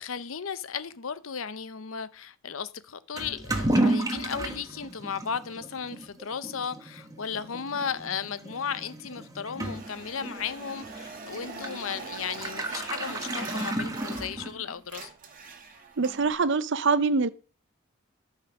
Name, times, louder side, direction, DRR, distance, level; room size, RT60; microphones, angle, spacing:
voice 1, 0.0-15.1, left 7 dB, 75° left, 0.7 m, -35 dB
Toilet flush / Liquid, 3.2-14.8, right 1 dB, 15° right, 1.3 m, -33 dB
sound 1, 9.6-14.5 14.8-16.3, right 4 dB, 40° right, 2.1 m, -43 dB
voice 2, 16.0-17.3, right 4 dB, 60° right, 0.6 m, -24 dB
13.5 x 5.5 x 6.1 m
head